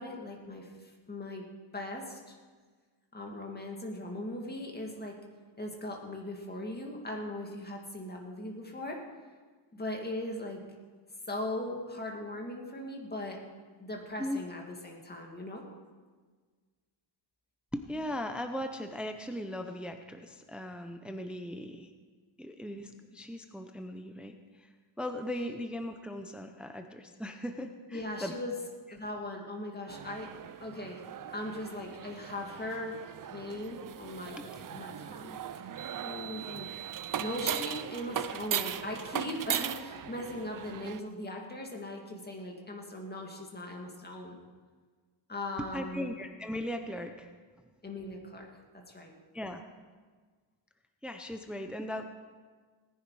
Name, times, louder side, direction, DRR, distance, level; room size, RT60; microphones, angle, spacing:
voice 1, 0.0-1.5 1.7-2.4 3.1-5.2 5.6-9.0 9.7-10.6 11.3-13.4 13.8-15.7 27.9-28.5 28.9-30.3 30.6-31.0 31.3-33.0 33.3-35.7 36.0-36.7 37.2-44.4 45.3-46.1 47.8-48.5 48.9-49.1, left 1 dB, 20° left, 1 dB, 2.1 m, -39 dB
voice 2, 17.7-21.9 22.4-24.7 25.0-28.3 34.4-34.5 45.7-47.3 49.3-49.6 51.0-52.0, left 1 dB, ahead, 6 dB, 0.6 m, -38 dB
sound 1, 29.9-41.0, right 9 dB, 45° right, 0.5 m, -38 dB
18.5 x 10.0 x 4.8 m, 1.5 s
wide cardioid pair, 145°, 48 cm